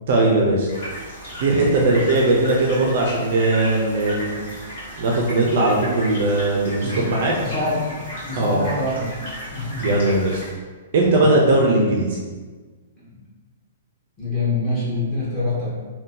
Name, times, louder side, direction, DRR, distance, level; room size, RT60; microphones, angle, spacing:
voice 1, 0.1-0.7 1.4-4.4 5.0-7.3 8.4-8.6 9.8-10.4 10.9-12.2, right 2 dB, 40° right, -2 dB, 0.4 m, -19 dB
sound 1, 0.7-10.5, equal, 50° left, 1.4 m, -35 dB
voice 2, 7.4-9.1 9.5-10.0 11.1-11.4 13.0-13.2 14.2-15.7, left 2 dB, 5° left, -11 dB, 0.9 m, -26 dB
2.6 x 2.2 x 3.7 m, 1.4 s
hypercardioid pair, 175°, 0 cm